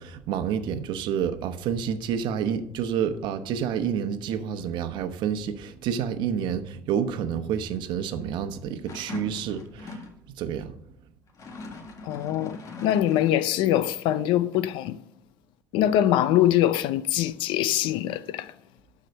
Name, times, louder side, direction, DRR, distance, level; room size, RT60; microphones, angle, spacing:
voice 1, 0.0-10.7, right 8 dB, 65° right, 1.0 m, -29 dB
sound 1, 8.9-10.2 11.3-13.5, left 3 dB, 40° left, 1.8 m, -40 dB
voice 2, 12.0-15.0 15.7-18.5, left 12 dB, 75° left, 0.6 m, -23 dB
12.0 x 4.9 x 6.6 m
cardioid pair, 125°, 8 cm